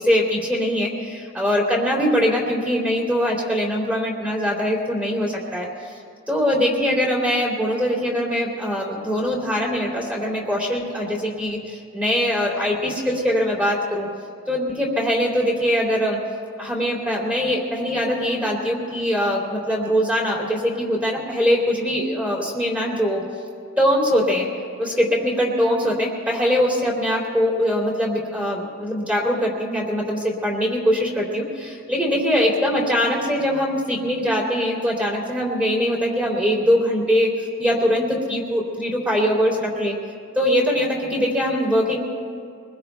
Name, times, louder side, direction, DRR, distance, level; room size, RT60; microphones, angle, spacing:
voice 1, 0.0-5.7 6.3-14.1 14.5-16.2 16.6-23.2 23.8-24.5 24.8-37.3 37.6-39.9 40.3-42.0, equal, 5° right, -3 dB, 3.0 m, -22 dB
25.5 x 21.0 x 2.3 m, 2.3 s
head